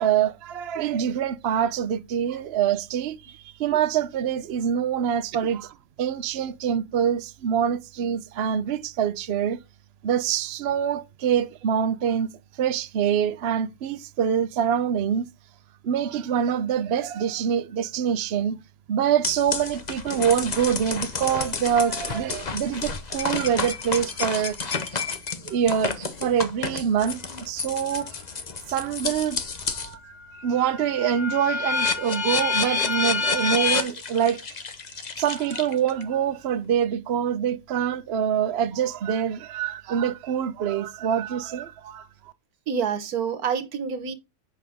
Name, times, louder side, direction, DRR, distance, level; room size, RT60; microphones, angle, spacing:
voice 1, 0.0-9.6 10.0-12.3 12.6-15.3 15.8-18.6 18.9-24.6 24.9-25.2 25.4-28.2 28.7-30.1 30.4-34.6 34.9-42.3, right 8 dB, 55° right, 0.8 m, -25 dB
sound 1, 19.2-29.9 30.4-36.0, left 5 dB, 35° left, 0.7 m, -29 dB
voice 2, 42.7-44.1, right 7 dB, 75° right, 1.5 m, -27 dB
8.0 x 5.8 x 3.5 m
omnidirectional pair, 1.6 m